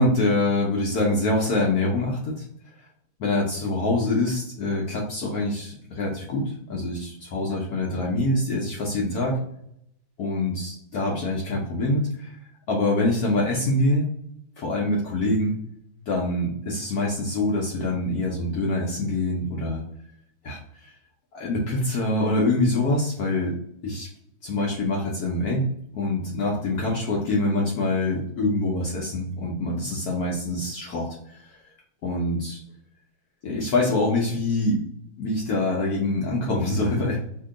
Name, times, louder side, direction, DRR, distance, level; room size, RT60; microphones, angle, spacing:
voice 1, 0.0-2.4 3.2-9.4 10.2-12.3 12.7-14.1 14.6-15.5 16.1-19.8 20.4-20.6 21.3-23.6 23.8-24.1 24.4-25.7 25.9-31.1 32.0-32.6 33.4-34.8 35.2-37.2, left 2 dB, 70° left, -2 dB, 0.9 m, -25 dB
2.9 x 2.7 x 3.7 m, 0.72 s
omnidirectional pair, 2.3 m